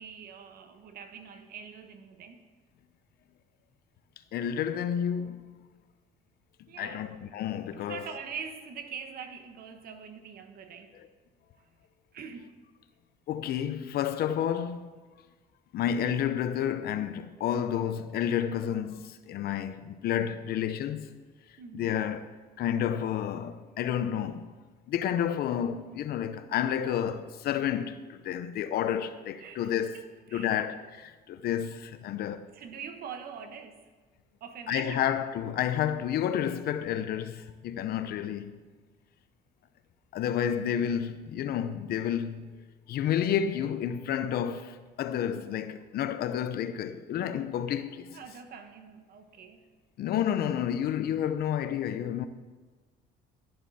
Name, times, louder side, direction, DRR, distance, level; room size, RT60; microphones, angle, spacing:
voice 1, 0.0-2.4 6.7-7.1 7.7-11.0 12.1-12.5 21.6-21.9 29.4-30.6 32.5-33.9 34.4-35.1 48.1-49.6, right 6 dB, 60° right, 1.4 m, -43 dB
voice 2, 4.3-5.5 6.8-8.0 13.3-14.9 15.7-21.1 21.7-22.3 22.6-24.5 24.9-30.0 30.3-32.5 34.7-38.6 40.1-42.6 42.9-48.2 50.0-52.3, left 9 dB, 65° left, 0.8 m, -30 dB
13.0 x 11.0 x 4.3 m
cardioid pair, 110°, 17 cm